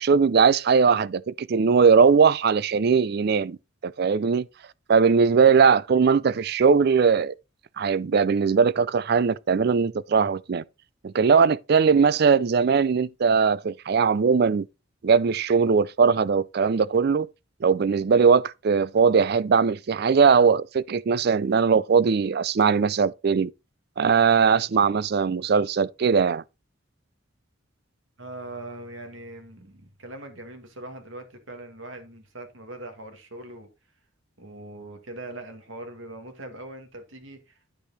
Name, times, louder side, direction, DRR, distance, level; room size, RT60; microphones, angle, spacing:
voice 1, 0.0-3.6 3.8-4.5 4.9-7.3 7.8-10.6 11.0-14.7 15.0-17.3 17.6-23.5 24.0-26.4, right 5 dB, 50° right, 0.4 m, -20 dB
voice 2, 28.2-33.7 34.4-37.6, right 2 dB, 75° right, 2.3 m, -41 dB
10.5 x 4.9 x 4.2 m
head